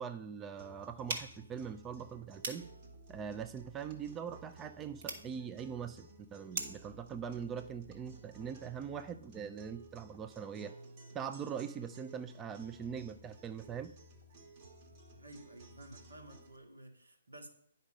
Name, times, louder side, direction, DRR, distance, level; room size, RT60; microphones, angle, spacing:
voice 1, 0.0-2.7 3.1-10.8 11.1-14.0, right 7 dB, 15° right, 10 dB, 0.3 m, -42 dB
sound 1, 0.6-16.6, right 2 dB, 35° right, 1.6 m, -56 dB
sound 2, 1.0-6.9, right 4 dB, 50° right, 1.6 m, -45 dB
voice 2, 15.2-17.5, right 1 dB, 80° right, 1 dB, 2.0 m, -53 dB
9.8 x 5.4 x 5.2 m, 0.68 s
figure-of-eight pair, 140°, 0 cm